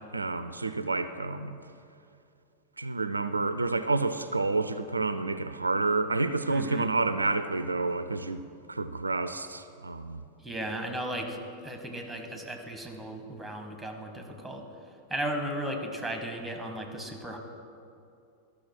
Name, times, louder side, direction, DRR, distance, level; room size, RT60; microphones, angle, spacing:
voice 1, 0.1-1.6 2.8-8.4 8.7-10.2, right 3 dB, 80° right, 12 dB, 0.3 m, -29 dB
voice 2, 6.5-6.9 10.4-14.6 15.1-17.4, right 1 dB, ahead, 4 dB, 1.4 m, -35 dB
12.5 x 6.2 x 5.9 m, 2.5 s
figure-of-eight pair, 90°, 0 cm